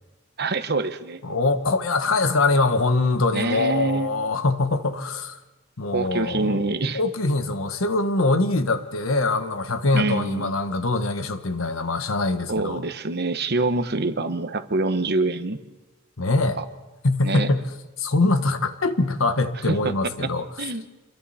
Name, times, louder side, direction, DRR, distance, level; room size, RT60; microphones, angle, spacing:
voice 1, 0.4-1.2 3.3-4.1 5.9-7.0 9.9-10.5 12.5-15.6 16.6-16.7 17.2-17.5 19.7-19.9 20.2-20.3 20.6-20.9, right 3 dB, 55° right, 9 dB, 1.1 m, -25 dB
voice 2, 1.2-5.4 5.8-6.7 6.9-12.8 16.2-16.6 17.0-17.7 18.0-20.5, left 2 dB, 90° left, 9 dB, 1.4 m, -23 dB
27.5 x 22.0 x 4.3 m, 1.1 s
head